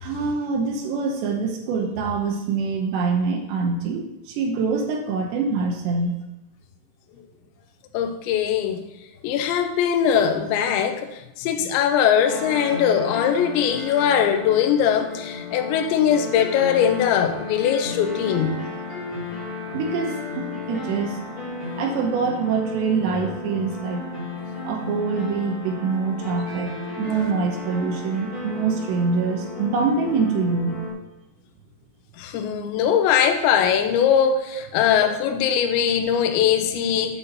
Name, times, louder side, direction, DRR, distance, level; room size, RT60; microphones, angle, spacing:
voice 1, 0.0-4.0 4.4-6.1 19.7-21.1 21.8-24.0 24.6-26.7 27.0-30.8, right 5 dB, 75° right, 2 dB, 2.7 m, -24 dB
voice 2, 7.9-8.8 9.2-11.1 11.4-18.6 32.2-37.2, left 8 dB, 85° left, 5 dB, 2.6 m, -21 dB
sound 1, 12.2-30.9, left 3 dB, 35° left, 3.4 m, -33 dB
9.6 x 5.7 x 4.2 m, 0.90 s
omnidirectional pair, 5.9 m